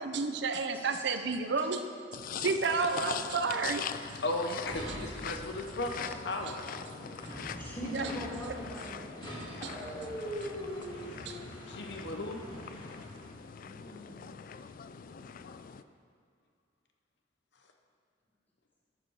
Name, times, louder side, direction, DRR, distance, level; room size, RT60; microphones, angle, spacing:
voice 1, 0.0-1.8 2.4-3.8 7.8-8.1 9.2-9.9 10.7-10.8 11.3-11.4, right 4 dB, 65° right, 8 dB, 0.6 m, -31 dB
sound 1, 2.1-15.8, left 7 dB, 50° left, 0.3 m, -43 dB
voice 2, 4.2-6.7 11.7-12.4, left 2 dB, 65° left, 3 dB, 0.9 m, -35 dB
sound 2, 4.7-13.4, equal, 25° left, 2.1 m, -43 dB
voice 3, 7.6-9.0 13.6-14.2, left 1 dB, 10° left, -4 dB, 1.8 m, -42 dB
12.0 x 6.9 x 4.7 m, 2.2 s
head